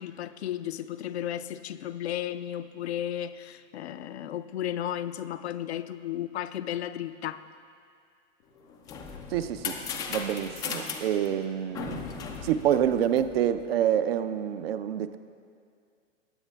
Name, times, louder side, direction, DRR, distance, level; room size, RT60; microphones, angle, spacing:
voice 1, 0.0-7.4, left 11 dB, 60° left, 12 dB, 0.5 m, -34 dB
sound 1, 8.6-13.6, left 6 dB, 10° left, 0.3 m, -37 dB
voice 2, 9.3-9.8 10.1-12.0 12.4-15.2, right 10 dB, 50° right, 11 dB, 0.6 m, -27 dB
20.5 x 9.5 x 2.3 m, 2.3 s
figure-of-eight pair, 105°, 38 cm